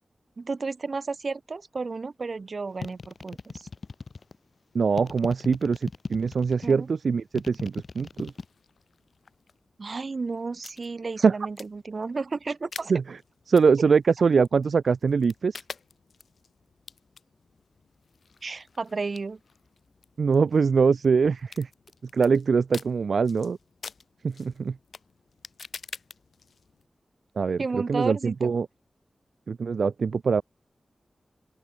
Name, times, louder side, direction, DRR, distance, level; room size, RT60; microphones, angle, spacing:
voice 1, 0.4-3.7 6.6-6.9 9.8-12.9 18.4-19.4 27.6-28.5, right 4 dB, 50° right, 2.8 m, -32 dB
sound 1, 2.8-4.4 5.0-6.7 7.3-8.4, left 4 dB, 55° left, 2.5 m, -37 dB
voice 2, 4.7-8.3 11.2-11.3 12.9-13.0 13.5-15.6 20.2-21.7 22.1-23.6 24.2-24.7 27.4-27.6 27.9-28.7 29.5-30.4, right 5 dB, 75° right, 0.4 m, -23 dB
sound 2, 8.1-26.9, left 5 dB, 75° left, 3.0 m, -48 dB
open air
wide cardioid pair, 95°, 0 cm